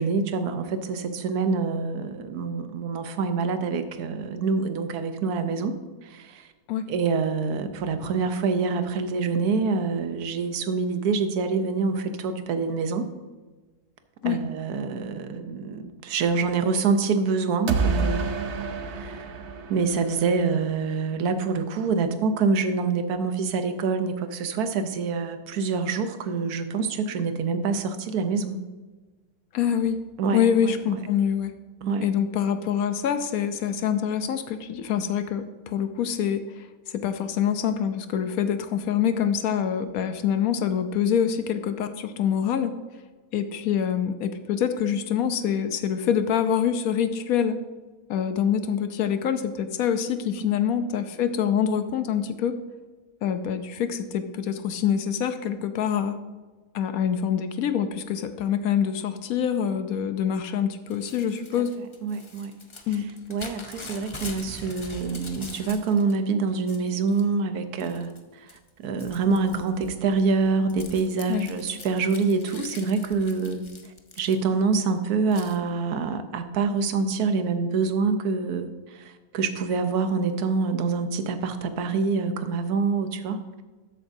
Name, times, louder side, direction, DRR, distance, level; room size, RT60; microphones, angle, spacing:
voice 1, 0.0-5.8 6.0-6.5 6.9-13.1 14.2-18.2 18.9-19.3 19.7-28.6 30.2-31.0 31.8-32.1 50.4-50.7 62.0-62.5 63.3-68.1 68.4-73.6 74.2-83.4, right 4 dB, 75° right, 9 dB, 1.3 m, -26 dB
sound 1, 17.7-20.6, right 4 dB, 55° right, 0.9 m, -28 dB
voice 2, 29.5-30.0 30.3-31.5 32.0-42.8 43.3-47.6 48.1-52.6 53.2-56.2 56.7-61.8 62.9-63.1 71.3-71.5, left 8 dB, 70° left, 10 dB, 1.0 m, -25 dB
Crumpling crinkling / Tearing, 60.9-66.1 66.5-67.3 67.8-68.2 68.5-74.7 75.3-75.6, left 3 dB, 45° left, 0.3 m, -43 dB
13.0 x 7.9 x 2.6 m, 1.3 s
omnidirectional pair, 1.7 m